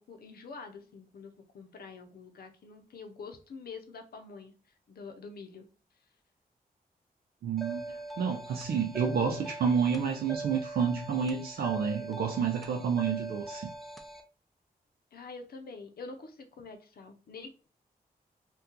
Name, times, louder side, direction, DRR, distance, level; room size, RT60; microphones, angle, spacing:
voice 1, 0.1-4.5 4.9-5.7 15.1-17.7, left 4 dB, 80° left, 0.7 m, -46 dB
voice 2, 7.4-13.7, right 6 dB, 85° right, 0.4 m, -29 dB
sound 1, 7.6-14.2, right 2 dB, ahead, 0.4 m, -41 dB
2.8 x 2.3 x 3.7 m
wide cardioid pair, 130°, 16 cm